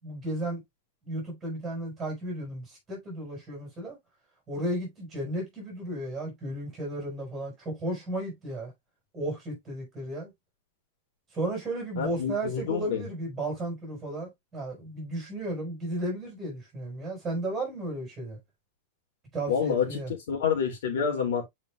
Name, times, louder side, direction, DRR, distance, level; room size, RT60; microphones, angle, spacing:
voice 1, 0.0-0.6 1.0-4.0 4.5-8.7 9.1-10.3 11.3-18.4 19.3-20.1, right 1 dB, 15° right, 5.5 m, -34 dB
voice 2, 12.0-13.0 19.5-21.5, left 7 dB, 70° left, 2.9 m, -28 dB
8.5 x 5.1 x 2.4 m
supercardioid pair, 175°, 0 cm